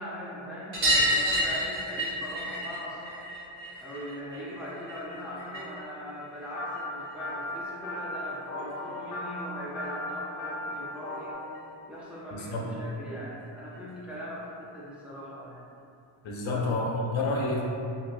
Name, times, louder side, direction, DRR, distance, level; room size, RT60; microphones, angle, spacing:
voice 1, 0.0-3.2 3.8-11.3 11.9-15.7 16.5-16.6, equal, 5° right, -7 dB, 0.4 m, -40 dB
sound 1, 0.7-5.8 6.1-7.3 8.6-8.7 8.9-9.0 9.3-9.4 10.7-10.8 11.1-11.2 11.5-11.6 12.9-13.0 13.7-13.8, equal, 70° right, 1.1 m, -30 dB
sound 2, 6.6-11.3, left 1 dB, 40° left, 0.6 m, -37 dB
voice 2, 12.3-12.6 16.2-17.6, left 2 dB, 75° left, -3 dB, 0.7 m, -29 dB
3.0 x 2.7 x 2.5 m, 2.7 s
wide cardioid pair, 105°, 47 cm